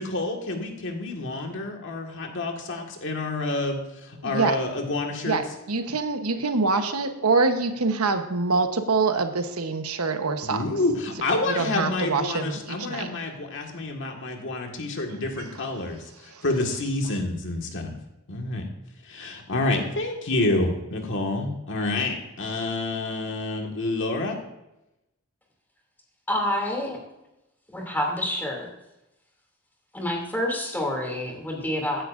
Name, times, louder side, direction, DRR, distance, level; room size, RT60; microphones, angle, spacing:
voice 1, 0.0-5.4 10.4-18.0 18.3-18.7 19.1-24.4, left 2 dB, 60° left, 2 dB, 1.8 m, -28 dB
voice 2, 4.2-4.6 5.2-10.6 11.5-13.1, right 4 dB, 85° right, 7 dB, 1.1 m, -25 dB
voice 3, 26.3-27.0 27.7-28.7 29.9-32.0, left 1 dB, 10° left, -1 dB, 2.7 m, -28 dB
15.5 x 10.0 x 2.6 m, 0.91 s
head